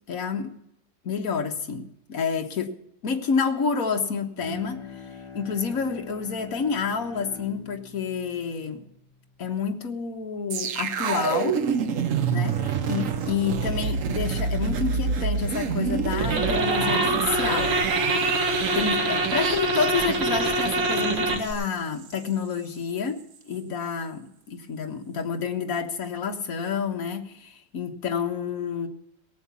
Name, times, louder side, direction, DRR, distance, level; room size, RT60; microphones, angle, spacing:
voice 1, 0.1-0.5 1.0-2.7 3.0-4.8 5.3-8.8 9.4-11.6 12.3-17.7 18.7-23.2 23.4-24.2 24.7-28.9, left 6 dB, 50° left, 3 dB, 1.7 m, -29 dB
Bowed string instrument, 4.4-9.8, left 4 dB, ahead, 5.1 m, -44 dB
sound 1, 10.5-21.7 22.0-22.2, right 6 dB, 55° right, 1.0 m, -28 dB
sound 2, 16.2-21.5, right 2 dB, 85° right, 2.5 m, -25 dB
17.5 x 8.0 x 7.0 m, 0.80 s
omnidirectional pair, 2.0 m